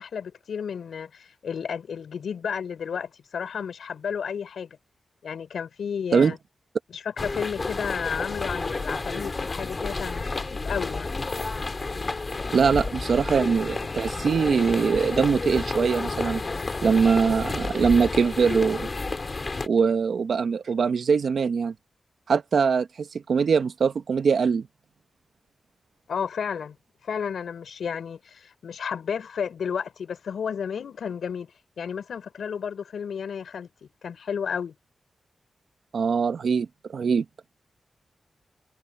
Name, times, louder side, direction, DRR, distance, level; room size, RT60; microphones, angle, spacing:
voice 1, 0.0-4.8 5.2-6.4 6.9-11.1 26.1-26.8 27.0-31.5 31.8-34.7, left 7 dB, 90° left, 5.8 m, -32 dB
sound 1, 7.2-19.7, left 3 dB, 40° left, 2.8 m, -31 dB
voice 2, 12.5-16.4 16.8-18.9 19.7-21.7 22.3-24.7 35.9-37.2, right 5 dB, 75° right, 1.5 m, -22 dB
cardioid pair, 75°, 0 cm